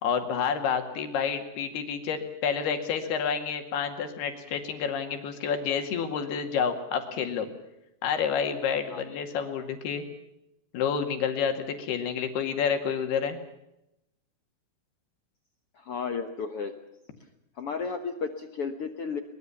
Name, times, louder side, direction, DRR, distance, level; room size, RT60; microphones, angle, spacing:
voice 1, 0.0-7.5 8.0-10.0 10.7-13.4, left 7 dB, 85° left, 6 dB, 4.2 m, -29 dB
voice 2, 8.9-9.2 15.8-16.7 17.6-19.2, left 5 dB, 65° left, 8 dB, 1.4 m, -33 dB
23.0 x 21.5 x 7.1 m, 0.85 s
omnidirectional pair, 4.4 m